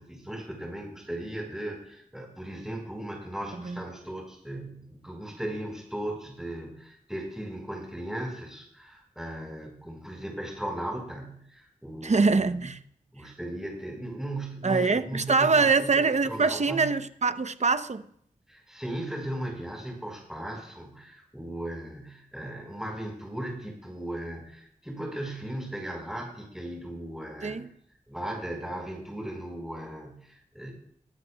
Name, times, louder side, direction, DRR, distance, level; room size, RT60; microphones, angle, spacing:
voice 1, 0.0-12.7 13.1-17.0 18.5-27.7 28.1-30.7, right 1 dB, 5° right, 4.2 m, -37 dB
voice 2, 12.0-12.8 14.6-18.0 27.4-27.7, right 4 dB, 55° right, 0.7 m, -24 dB
22.0 x 12.0 x 2.3 m
wide cardioid pair, 50°, 14 cm